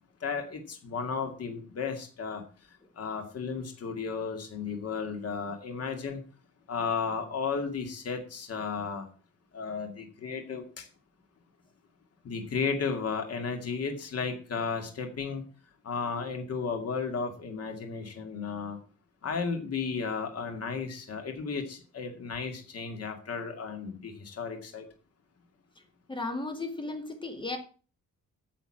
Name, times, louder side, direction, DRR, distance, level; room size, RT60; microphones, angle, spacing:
voice 1, 0.2-2.4 3.0-6.2 6.7-9.1 9.5-10.9 12.2-15.4 15.8-18.8 19.2-24.8, left 5 dB, 50° left, 5 dB, 2.2 m, -34 dB
voice 2, 26.1-27.6, left 2 dB, 15° left, 6 dB, 2.0 m, -35 dB
9.4 x 6.6 x 7.7 m, 0.38 s
wide cardioid pair, 175°, 32 cm